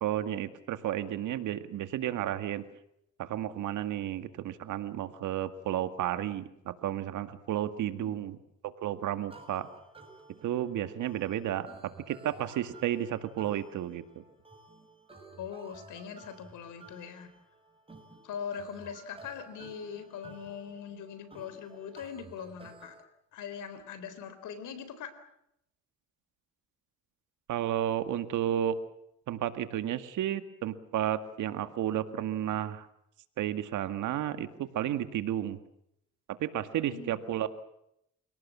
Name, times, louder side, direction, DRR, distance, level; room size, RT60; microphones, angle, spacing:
voice 1, 0.0-2.6 3.2-8.4 8.8-9.7 10.4-11.7 12.1-14.2 27.5-28.8 29.3-32.9 33.4-35.6 36.3-37.5, right 11 dB, 80° right, 10 dB, 2.0 m, -32 dB
voice 2, 7.6-8.1 15.4-17.3 18.2-23.0 23.3-25.1 36.9-37.1, left 7 dB, 80° left, 12 dB, 4.0 m, -41 dB
sound 1, 9.3-23.0, right 3 dB, 20° right, 6.3 m, -54 dB
29.5 x 18.0 x 7.5 m, 0.77 s
cardioid pair, 90°, 30 cm